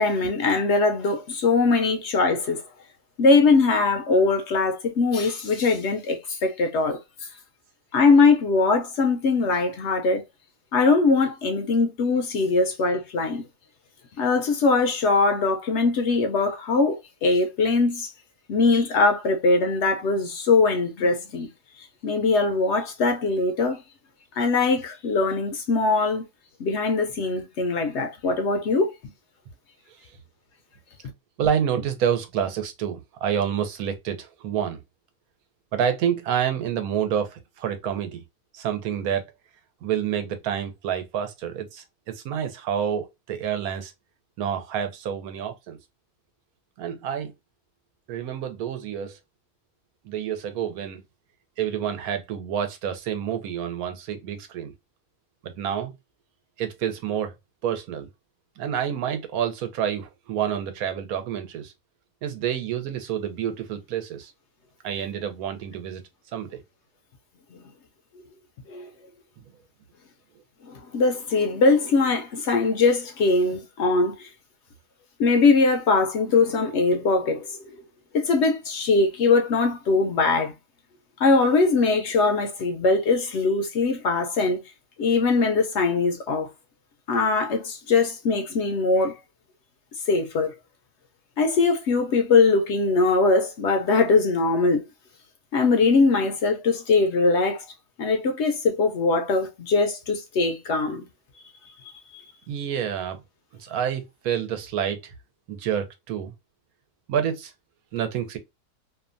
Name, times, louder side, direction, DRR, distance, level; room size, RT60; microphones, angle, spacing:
voice 1, 0.0-2.6 3.2-7.3 7.9-10.2 10.7-13.4 14.2-18.1 18.5-21.5 21.8-23.8 24.4-26.2 26.6-28.9 68.7-68.9 70.7-74.3 75.2-77.8 78.1-80.5 81.2-84.6 85.0-86.5 87.1-89.2 90.1-90.5 91.4-94.8 95.5-97.7 98.0-101.1 102.1-102.2, left 3 dB, 65° left, 0.7 m, -21 dB
voice 2, 31.4-34.8 35.7-38.2 38.5-39.2 39.8-43.9 44.4-45.8 46.8-47.3 48.1-49.2 50.0-51.0 51.6-54.7 55.4-55.9 56.6-57.3 57.6-58.1 58.6-61.7 62.2-64.3 64.8-66.0 66.3-66.6 102.5-103.2 103.5-105.1 105.5-106.3 107.1-107.5 107.9-108.4, right 8 dB, 90° right, 1.2 m, -28 dB
2.8 x 2.2 x 2.4 m
omnidirectional pair, 1.5 m